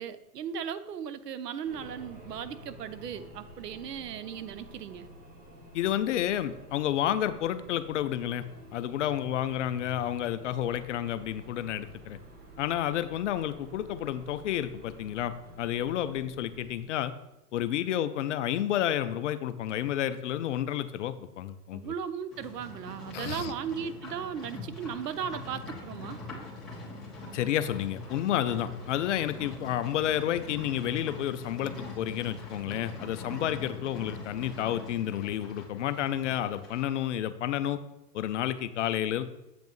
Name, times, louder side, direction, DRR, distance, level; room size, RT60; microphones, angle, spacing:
voice 1, 0.0-5.1 21.7-26.2, right 8 dB, 85° right, 14 dB, 0.6 m, -37 dB
sound 1, 1.6-16.8, equal, 20° right, 0.9 m, -50 dB
voice 2, 5.7-8.5 8.7-12.2 12.6-17.1 17.5-21.9 23.1-23.5 27.3-37.8 38.1-39.2, left 11 dB, 50° left, 13 dB, 0.5 m, -30 dB
Livestock farm animals working animals, 22.3-36.9, left 2 dB, ahead, 1.6 m, -43 dB
8.0 x 5.2 x 3.1 m, 0.91 s
hypercardioid pair, 130°, 47 cm